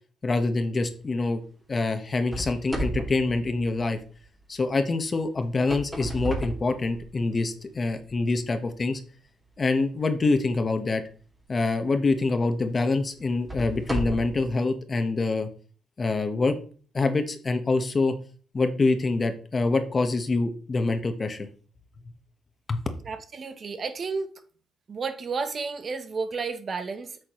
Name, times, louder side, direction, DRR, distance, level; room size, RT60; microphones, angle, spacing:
voice 1, 0.2-1.4 1.7-4.0 4.5-9.0 9.6-11.0 11.5-15.5 16.0-16.5 16.9-18.1 18.5-21.5 22.7-22.8, left 3 dB, 35° left, 1.2 m, -25 dB
sound 1, 2.3-4.3 5.4-7.4 8.0-8.1 8.8-8.9 11.5-11.7 12.3-12.4 13.2-14.5, right 1 dB, 15° right, 2.4 m, -33 dB
voice 2, 23.1-24.3 24.9-27.2, right 4 dB, 45° right, 0.9 m, -32 dB
8.6 x 6.2 x 3.1 m
cardioid pair, 90°, 0 cm